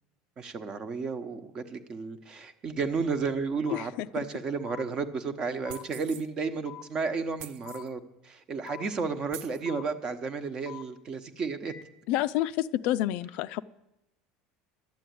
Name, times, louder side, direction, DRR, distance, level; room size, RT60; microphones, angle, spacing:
voice 1, 0.4-11.7, right 4 dB, 30° right, 10 dB, 1.0 m, -33 dB
voice 2, 3.7-4.1 12.1-13.6, left 14 dB, 60° left, 14 dB, 0.4 m, -28 dB
sound 1, 3.7-3.8 4.7-4.8 5.7-5.8 6.7-6.8 7.7-7.8 8.7-8.8 9.7-9.8 10.7-10.8 11.7-11.8, left 13 dB, 25° left, 0.7 m, -44 dB
sound 2, 5.7-6.3 7.4-7.9 8.7-8.8 9.3-9.6, right 12 dB, 65° right, 0.5 m, -44 dB
12.0 x 7.7 x 9.4 m, 0.91 s
supercardioid pair, 140°, 3 cm